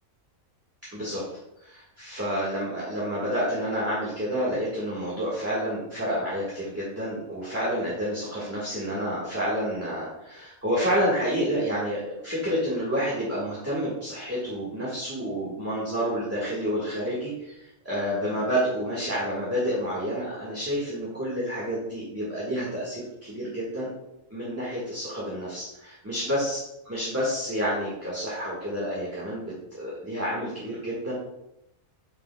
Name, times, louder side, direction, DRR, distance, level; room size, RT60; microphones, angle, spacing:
voice 1, 1.6-23.9 24.3-31.1, equal, 10° right, -8 dB, 1.7 m, -29 dB
9.1 x 5.3 x 2.3 m, 0.84 s
omnidirectional pair, 1.4 m